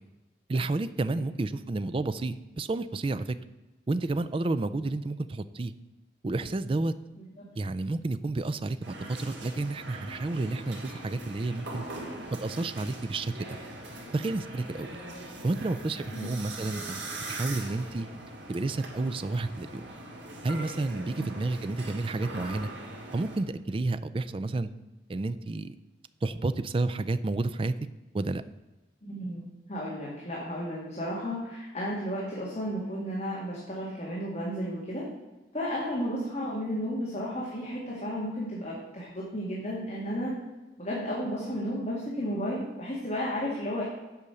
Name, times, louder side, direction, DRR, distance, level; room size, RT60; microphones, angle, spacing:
voice 1, 0.5-3.4 3.9-5.7 6.2-6.9 7.6-11.8 12.4-13.3 14.1-14.9 15.4-17.0 17.3-18.1 18.5-19.9 20.4-22.7 23.1-24.7 25.1-25.7 26.2-27.7 28.1-28.4, right 2 dB, 30° right, 12 dB, 0.4 m, -30 dB
sound 1, 8.8-23.4, right 2 dB, 80° right, 2.1 m, -41 dB
voice 2, 29.0-29.4 29.7-35.1 35.5-40.3 40.8-43.8, equal, 35° left, -5 dB, 2.0 m, -33 dB
8.3 x 5.2 x 6.9 m, 1.1 s
head